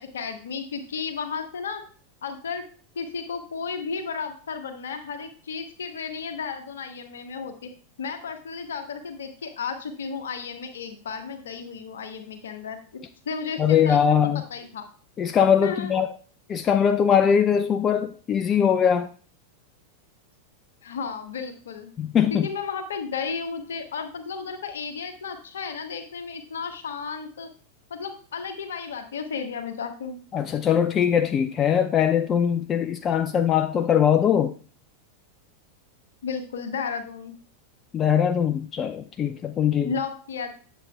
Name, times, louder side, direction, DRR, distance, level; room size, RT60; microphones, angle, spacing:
voice 1, 0.0-1.8 2.2-2.6 2.9-7.7 8.0-14.9 15.6-15.9 20.8-21.9 22.3-27.5 27.9-30.2 36.2-37.4 39.8-40.5, left 5 dB, 65° left, 1.0 m, -33 dB
voice 2, 13.6-14.4 15.2-16.1 16.5-19.1 22.0-22.5 30.3-34.5 37.9-39.9, left 8 dB, 25° left, 0.3 m, -21 dB
8.5 x 6.9 x 2.3 m
figure-of-eight pair, 90°, 0 cm